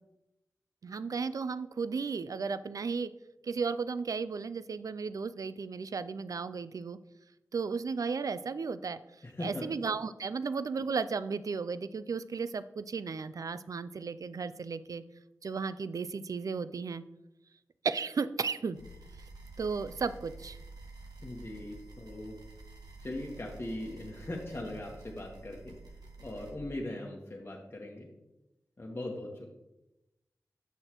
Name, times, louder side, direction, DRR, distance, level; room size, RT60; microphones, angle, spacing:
voice 1, 0.8-3.1 3.4-7.0 7.5-9.0 9.4-15.0 15.4-17.0 17.8-18.8 19.6-20.6, right 5 dB, 65° right, 14 dB, 0.4 m, -34 dB
voice 2, 9.2-9.7 21.2-22.4 23.0-25.8 26.2-28.1 28.8-29.5, left 1 dB, 35° left, -2 dB, 1.2 m, -40 dB
sound 1, 18.7-26.5, right 2 dB, 85° right, 1.2 m, -50 dB
8.0 x 6.4 x 3.0 m, 0.95 s
cardioid pair, 45°, 6 cm